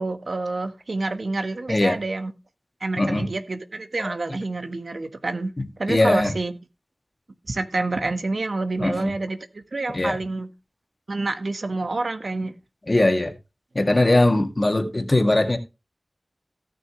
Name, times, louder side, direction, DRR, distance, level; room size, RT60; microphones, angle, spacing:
voice 1, 0.0-2.3 2.8-5.5 5.8-6.5 7.5-10.5 11.1-12.5, right 2 dB, 80° right, 1.3 m, -28 dB
voice 2, 3.0-3.3 4.0-4.1 5.9-6.3 8.8-9.1 9.9-10.2 12.9-13.3 13.8-15.6, left 2 dB, 45° left, 2.0 m, -20 dB
17.5 x 6.1 x 3.1 m
wide cardioid pair, 45°, 0 cm